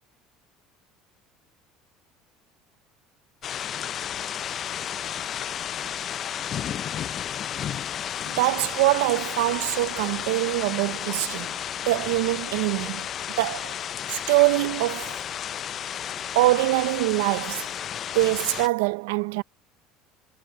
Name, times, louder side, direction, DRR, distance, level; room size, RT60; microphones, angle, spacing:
sound 1, 3.4-18.7, left 9 dB, 45° left, 0.5 m, -32 dB
voice 1, 8.4-11.5 11.9-13.1 13.4-13.8 14.1-15.1 16.3-17.7 18.1-19.4, right 20 dB, 85° right, 0.5 m, -24 dB
supercardioid pair, 105°, 0 cm